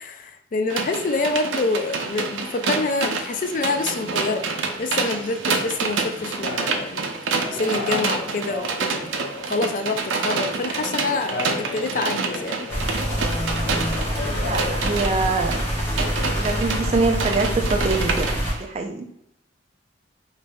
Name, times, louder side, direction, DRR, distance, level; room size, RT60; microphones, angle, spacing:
voice 1, 0.0-4.4 4.8-7.0 7.5-8.8 9.5-12.6, left 3 dB, 45° left, 8 dB, 0.3 m, -26 dB
sound 1, 0.7-18.6, right 4 dB, 85° right, 0.5 m, -28 dB
sound 2, 3.4-18.1, left 3 dB, 70° left, 0.8 m, -36 dB
sound 3, 12.7-18.5, equal, 10° left, 0.8 m, -26 dB
voice 2, 14.5-15.6 16.3-18.3 18.6-19.1, right 3 dB, 35° right, 3 dB, 0.4 m, -24 dB
5.2 x 2.6 x 2.2 m, 0.74 s
head